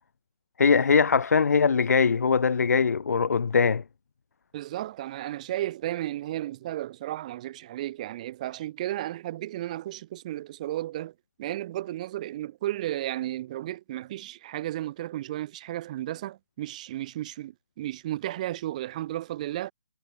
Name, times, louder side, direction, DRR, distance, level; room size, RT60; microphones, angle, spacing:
voice 1, 0.6-3.8, left 5 dB, 70° left, 3.4 m, -21 dB
voice 2, 4.5-11.1 11.4-19.7, right 14 dB, 25° right, 6.2 m, -33 dB
hypercardioid pair, 175°, 9 cm